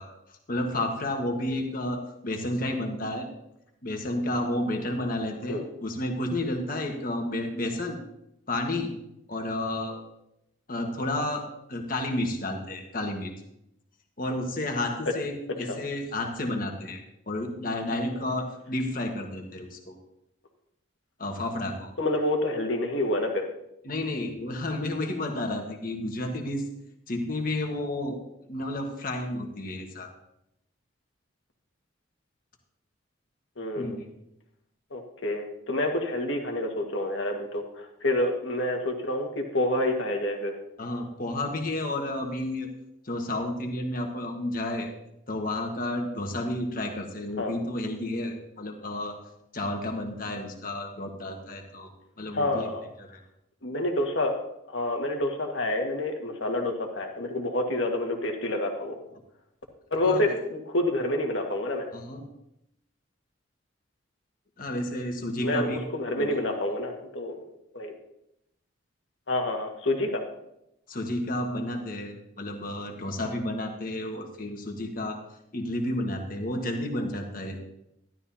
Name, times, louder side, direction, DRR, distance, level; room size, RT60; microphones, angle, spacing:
voice 1, 0.0-3.3 3.8-8.0 8.5-8.9 9.3-10.0 10.7-13.3 14.2-20.0 21.2-21.9 23.8-26.7 27.1-28.2 28.5-30.1 33.7-34.1 40.8-42.7 43.0-44.9 45.3-49.2 49.5-51.9 52.2-52.7 53.0-53.2 60.0-60.2 61.9-62.2 64.6-65.9 66.2-66.4 70.9-75.2 75.5-77.6, left 1 dB, 45° left, 3 dB, 1.5 m, -31 dB
voice 2, 22.0-23.4 33.6-34.0 34.9-40.5 47.4-47.6 52.3-52.9 53.6-54.3 54.7-59.0 59.9-61.9 65.4-67.4 67.7-67.9 69.3-70.2, left 1 dB, 70° left, 2 dB, 1.8 m, -28 dB
12.5 x 12.0 x 2.8 m, 0.82 s
head